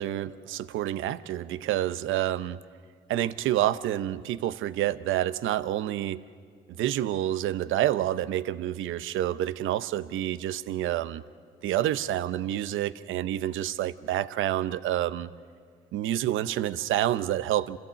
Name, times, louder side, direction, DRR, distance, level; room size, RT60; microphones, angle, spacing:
voice 1, 0.0-2.6 3.1-6.2 6.8-11.2 11.6-15.3 15.9-17.8, right 13 dB, 80° right, 14 dB, 0.7 m, -28 dB
27.0 x 15.0 x 8.1 m, 2.1 s
supercardioid pair, 55°, 20 cm